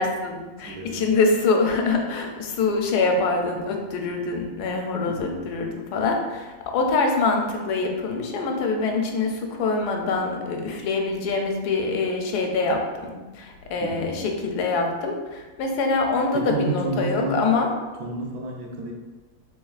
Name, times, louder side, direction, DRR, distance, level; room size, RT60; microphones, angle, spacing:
voice 1, 0.0-17.7, left 3 dB, 85° left, 3 dB, 1.1 m, -24 dB
voice 2, 0.6-1.1 5.1-5.5 13.8-14.2 16.3-17.5 18.0-18.9, right 2 dB, 80° right, 1 dB, 1.1 m, -30 dB
3.4 x 3.3 x 2.4 m, 1.2 s
omnidirectional pair, 1.7 m